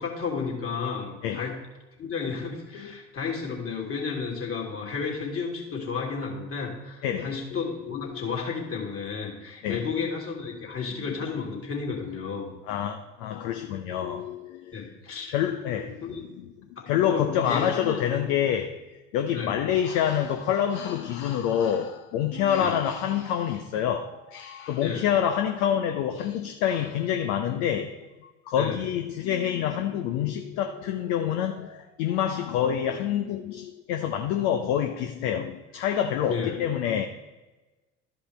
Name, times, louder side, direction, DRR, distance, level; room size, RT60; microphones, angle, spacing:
voice 1, 0.0-1.5 2.0-12.5 14.7-15.3 16.0-16.3 16.8-18.1 19.3-19.6 22.6-22.8 24.8-25.1 28.6-28.8 36.3-36.6, left 5 dB, 35° left, 2.7 m, -32 dB
voice 2, 7.0-8.2 9.6-9.8 12.7-14.8 15.3-16.0 16.4-16.5 16.9-18.8 19.1-27.9 28.5-37.1, left 9 dB, 60° left, 0.8 m, -27 dB
12.5 x 5.3 x 3.3 m
figure-of-eight pair, 60°, 38 cm